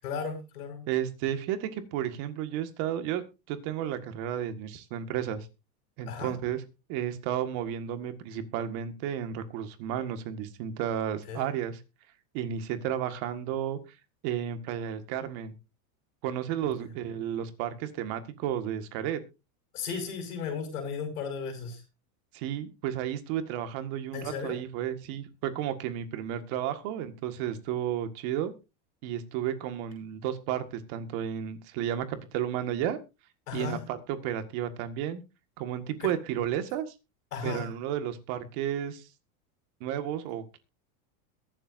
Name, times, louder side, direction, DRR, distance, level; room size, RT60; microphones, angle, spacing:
voice 1, 0.0-0.8 6.1-6.3 11.3-11.5 19.7-21.8 24.1-24.6 33.5-33.9 36.0-36.1 37.3-37.7, left 5 dB, 90° left, 3 dB, 5.3 m, -35 dB
voice 2, 0.9-3.2 3.5-5.5 6.0-6.6 6.9-11.8 12.3-13.8 14.2-15.5 16.2-19.2 22.3-28.5 29.0-33.0 33.5-35.2 35.6-36.9 37.4-39.1 39.8-40.6, right 10 dB, 50° right, 9 dB, 1.8 m, -32 dB
22.0 x 7.7 x 2.6 m, 0.27 s
supercardioid pair, 145°, 45 cm